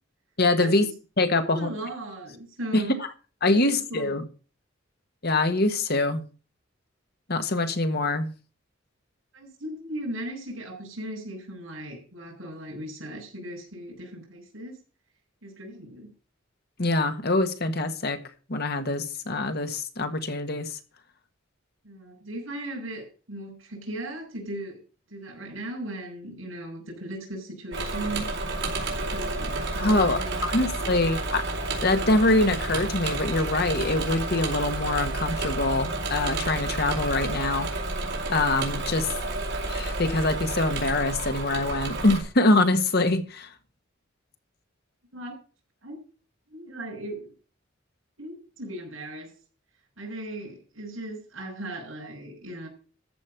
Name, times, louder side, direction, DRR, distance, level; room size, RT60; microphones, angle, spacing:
voice 1, 0.4-0.9 1.2-1.7 2.7-2.8 3.4-4.2 5.2-6.2 7.3-8.3 16.8-18.2 18.5-20.8 29.8-30.2 30.5-31.4 31.8-37.7 38.3-39.1 39.6-43.5, left 2 dB, 50° left, 1.6 m, -24 dB
voice 2, 1.3-3.0 3.5-4.2 9.3-14.8 15.4-16.1 21.8-24.8 25.1-28.3 28.9-31.2 45.1-45.3 45.8-46.0 46.5-47.3 48.2-49.3 50.0-52.7, right 1 dB, 85° right, 5.9 m, -37 dB
Engine / Mechanisms, 27.7-42.2, right 2 dB, 60° right, 4.2 m, -30 dB
14.0 x 5.4 x 7.7 m
head